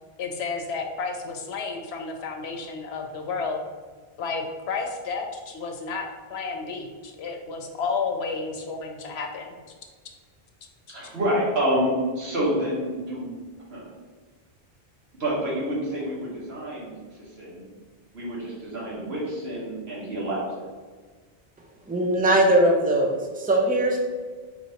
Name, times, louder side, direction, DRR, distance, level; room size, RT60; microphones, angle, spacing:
voice 1, 0.2-3.6 4.2-9.6 11.0-11.1, left 4 dB, 85° left, 3 dB, 0.9 m, -31 dB
voice 2, 10.9-13.4 13.7-13.9 15.2-16.9 17.4-17.7 18.1-20.5, equal, 80° right, -6 dB, 1.7 m, -28 dB
voice 3, 21.9-24.0, right 1 dB, 10° right, 1 dB, 0.4 m, -20 dB
4.4 x 2.8 x 4.3 m, 1.5 s
omnidirectional pair, 1.1 m